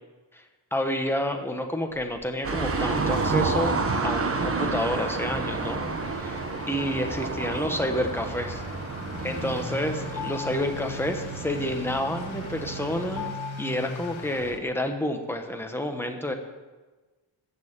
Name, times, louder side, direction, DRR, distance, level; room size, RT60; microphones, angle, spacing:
voice 1, 0.7-3.7 4.0-6.4 6.7-8.6 9.2-13.3 13.6-16.3, left 1 dB, 5° left, 4 dB, 1.2 m, -29 dB
Motor vehicle (road) / Accelerating revving vroom, 1.9-14.6, left 2 dB, 75° left, 1.4 m, -41 dB
sound 1, 2.4-13.3, right 3 dB, 30° right, 1.1 m, -30 dB
sound 2, 8.6-15.4, left 6 dB, 40° left, 1.4 m, -43 dB
14.0 x 6.7 x 8.8 m, 1.2 s
wide cardioid pair, 165°, 47 cm